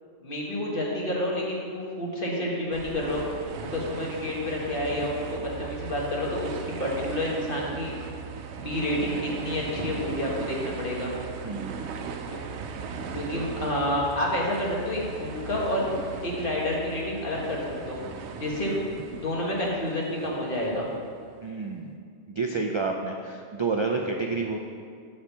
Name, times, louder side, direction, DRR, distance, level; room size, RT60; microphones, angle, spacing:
voice 1, 0.2-3.2 3.7-7.9 8.6-11.1 13.1-15.8 16.2-17.6 17.9-18.0 18.4-18.8 19.2-20.9, left 1 dB, 55° left, -4 dB, 1.9 m, -29 dB
sound 1, 2.7-21.5, right 6 dB, 85° right, 0.9 m, -38 dB
voice 2, 11.4-11.7 21.4-22.0 22.3-24.6, right 4 dB, 40° right, 2 dB, 0.4 m, -29 dB
9.6 x 4.3 x 7.2 m, 2.2 s
omnidirectional pair, 1.1 m